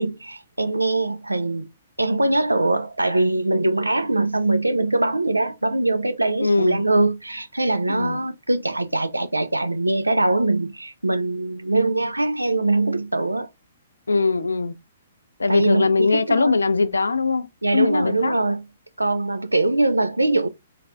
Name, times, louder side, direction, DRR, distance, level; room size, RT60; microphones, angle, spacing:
voice 1, 0.0-1.7 2.0-13.5 15.5-16.6 17.6-18.6 19.0-20.5, right 2 dB, 90° right, 0.4 m, -22 dB
voice 2, 6.4-6.8 7.9-8.2 14.1-14.7 15.4-17.5 17.7-18.3, left 4 dB, 80° left, 0.5 m, -21 dB
4.0 x 3.2 x 2.5 m
figure-of-eight pair, 120°, 0 cm